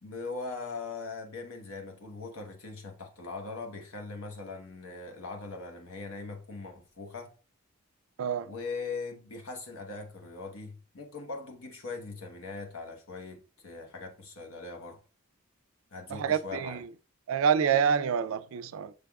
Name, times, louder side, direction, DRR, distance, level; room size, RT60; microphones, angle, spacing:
voice 1, 0.0-7.4 8.4-15.0 15.9-16.8, left 4 dB, 75° left, 1.1 m, -40 dB
voice 2, 16.1-16.9 17.3-18.9, right 7 dB, 70° right, 0.3 m, -27 dB
6.6 x 3.4 x 2.3 m
head